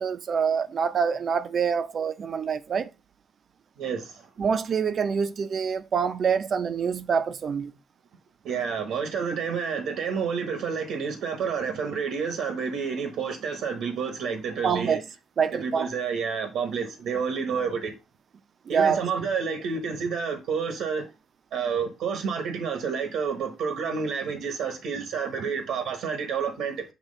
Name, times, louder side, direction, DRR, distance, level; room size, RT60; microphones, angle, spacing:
voice 1, 0.0-2.9 4.4-7.7 14.6-15.0 15.4-15.9 18.7-19.0, right 6 dB, 50° right, 0.6 m, -26 dB
voice 2, 3.8-4.3 8.4-15.0 15.5-17.9 18.7-21.1 21.5-26.8, right 6 dB, 85° right, 1.2 m, -29 dB
7.4 x 3.0 x 5.4 m
cardioid pair, 90°, 0 cm